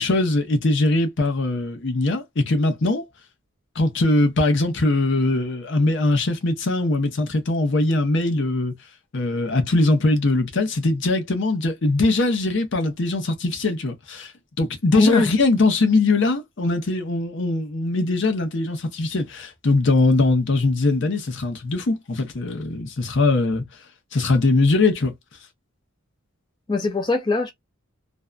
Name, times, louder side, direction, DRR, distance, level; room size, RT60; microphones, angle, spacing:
voice 1, 0.0-3.0 3.8-8.7 9.1-14.3 14.6-23.6 24.1-25.1, left 2 dB, 55° left, 0.6 m, -21 dB
voice 2, 14.9-15.3 26.7-27.5, left 3 dB, 20° left, 0.3 m, -20 dB
2.6 x 2.2 x 2.3 m
head